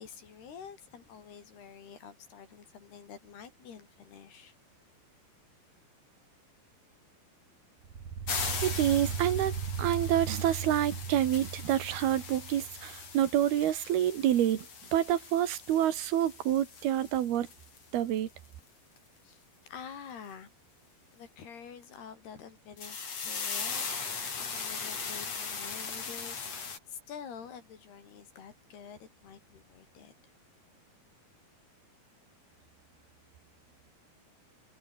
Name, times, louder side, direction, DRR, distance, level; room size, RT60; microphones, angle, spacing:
voice 1, 0.0-4.5 19.2-20.5 21.1-30.3, left 7 dB, 80° left, 5.8 m, -48 dB
sound 1, 7.8-13.1, right 6 dB, 45° right, 3.6 m, -37 dB
sound 2, 8.3-17.8 18.2-18.3 22.8-26.8, left 5 dB, 40° left, 4.9 m, -39 dB
voice 2, 8.6-9.5 9.8-17.5 17.9-18.3, right 11 dB, 75° right, 3.6 m, -28 dB
omnidirectional pair, 4.6 m